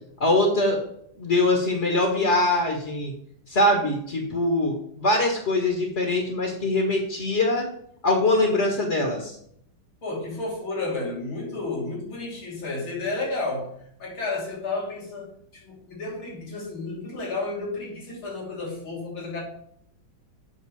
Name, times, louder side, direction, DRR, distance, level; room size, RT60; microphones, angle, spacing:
voice 1, 0.2-0.8 1.2-3.1 3.5-7.7 8.0-9.4, left 2 dB, 35° left, 1 dB, 1.7 m, -23 dB
voice 2, 10.0-13.7 14.0-19.4, left 3 dB, 90° left, -3 dB, 3.8 m, -32 dB
8.8 x 6.5 x 4.8 m, 0.69 s
omnidirectional pair, 2.2 m